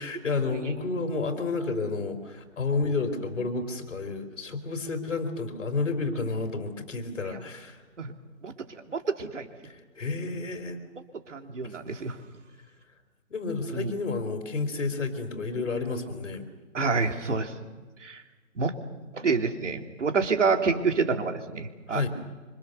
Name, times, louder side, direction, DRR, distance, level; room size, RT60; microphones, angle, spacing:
voice 1, 0.0-7.8 9.6-10.8 13.3-16.5 21.9-22.1, left 3 dB, 60° left, 7 dB, 4.5 m, -31 dB
voice 2, 8.9-9.5 11.3-12.2 13.7-13.9 16.7-17.5 18.0-18.2 18.6-18.7 19.1-22.1, right 4 dB, 60° right, 5 dB, 3.1 m, -27 dB
26.5 x 26.0 x 6.8 m, 1.3 s
hypercardioid pair, 170°, 42 cm